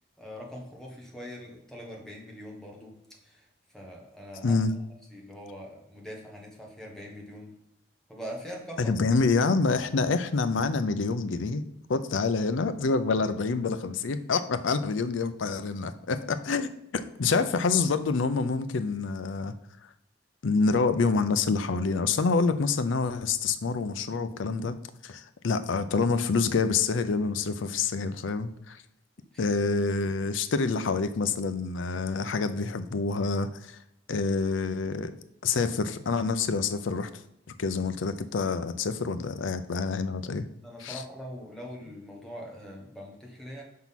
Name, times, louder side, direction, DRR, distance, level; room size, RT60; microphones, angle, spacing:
voice 1, 0.2-2.9 3.2-3.5 3.7-4.6 5.1-7.5 8.1-8.9 29.3-29.5 40.6-43.6, equal, 5° left, -2 dB, 1.3 m, -42 dB
voice 2, 4.4-4.7 8.8-11.6 11.9-19.5 20.4-24.7 25.0-28.8 29.4-33.8 34.1-35.1 35.4-37.2 37.6-40.4 40.8-41.0, left 4 dB, 85° left, 11 dB, 0.5 m, -27 dB
5.9 x 3.7 x 5.8 m, 0.81 s
head